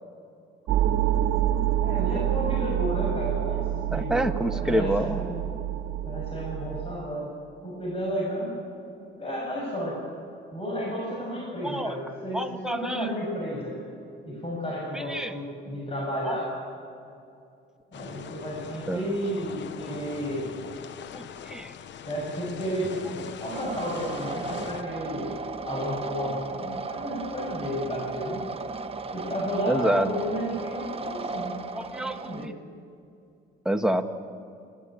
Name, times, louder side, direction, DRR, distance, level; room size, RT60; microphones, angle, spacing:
sound 1, 0.7-7.0, right 11 dB, 80° right, 1.2 m, -27 dB
voice 1, 1.8-5.4 6.0-7.3 7.6-8.6 9.0-10.0 10.5-13.8 14.2-16.7 17.9-20.5 22.0-25.3 25.7-28.4 29.1-31.6 31.9-32.5, equal, 30° left, -3 dB, 7.0 m, -32 dB
voice 2, 3.9-5.2 11.6-12.0 12.3-13.1 14.9-15.3 16.2-16.3 18.9-19.1 21.1-21.7 29.7-30.1 31.9-32.5 33.6-34.2, right 1 dB, 5° right, 5 dB, 1.5 m, -28 dB
sound 2, 17.9-24.8, left 8 dB, 65° left, 0.9 m, -41 dB
sound 3, 23.5-32.5, right 4 dB, 30° right, 1.1 m, -35 dB
29.0 x 13.0 x 8.9 m, 2.6 s
cardioid pair, 90°, 20 cm